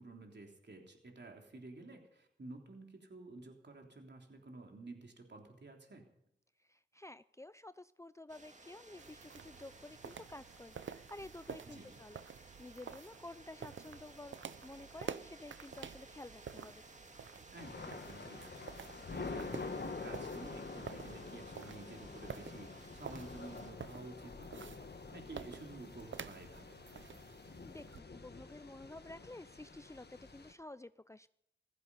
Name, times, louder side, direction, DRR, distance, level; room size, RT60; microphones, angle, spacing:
voice 1, 0.0-6.1 11.7-12.0 17.5-24.7 25.1-26.8, right 2 dB, 65° right, 2 dB, 3.4 m, -52 dB
voice 2, 6.6-14.4 14.6-16.8 27.7-31.3, left 2 dB, 15° left, 14 dB, 0.5 m, -51 dB
sound 1, 8.3-23.7, right 2 dB, 40° right, 2.1 m, -58 dB
sound 2, 9.0-28.0, right 7 dB, 85° right, 0.6 m, -50 dB
Thunder / Rain, 17.6-30.5, left 4 dB, 60° left, 1.5 m, -47 dB
16.0 x 14.5 x 5.5 m, 0.76 s
cardioid pair, 40°, 19 cm